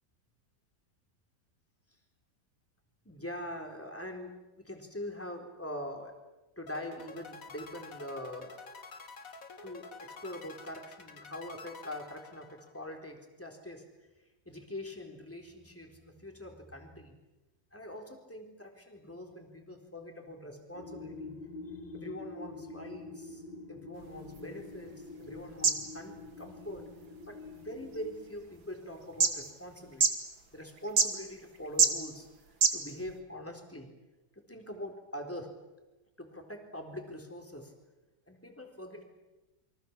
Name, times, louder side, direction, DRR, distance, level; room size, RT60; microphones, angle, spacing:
voice 1, 3.0-6.1 6.6-8.6 9.6-13.8 14.5-17.1 17.7-21.4 21.7-23.4 23.7-26.9 27.3-30.2 30.5-33.9 34.5-35.5 36.2-37.7 38.3-39.0, left 1 dB, 5° left, 3 dB, 4.0 m, -43 dB
sound 1, 6.7-13.0, left 4 dB, 45° left, 2.0 m, -49 dB
sound 2, 20.7-28.2, left 3 dB, 70° left, 4.0 m, -46 dB
sound 3, 23.9-33.2, right 5 dB, 70° right, 3.1 m, -33 dB
29.0 x 24.5 x 7.5 m, 1.1 s
omnidirectional pair, 2.2 m